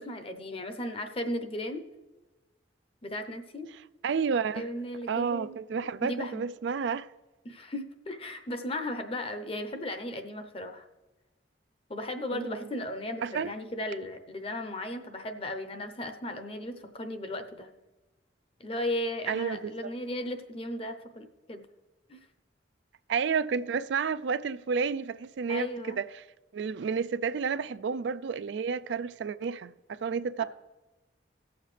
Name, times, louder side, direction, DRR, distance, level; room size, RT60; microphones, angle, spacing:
voice 1, 0.0-1.8 3.0-3.7 4.6-5.6 6.0-6.4 7.4-10.9 11.9-17.7 18.6-21.6 22.1-22.2 25.5-26.0 30.4-30.5, left 1 dB, 30° left, 0.8 m, -36 dB
voice 2, 4.0-4.7 5.1-7.1 12.3-12.6 13.2-13.5 19.3-19.9 23.1-26.1 26.5-30.4, right 6 dB, 75° right, 0.4 m, -31 dB
18.0 x 7.2 x 3.3 m
head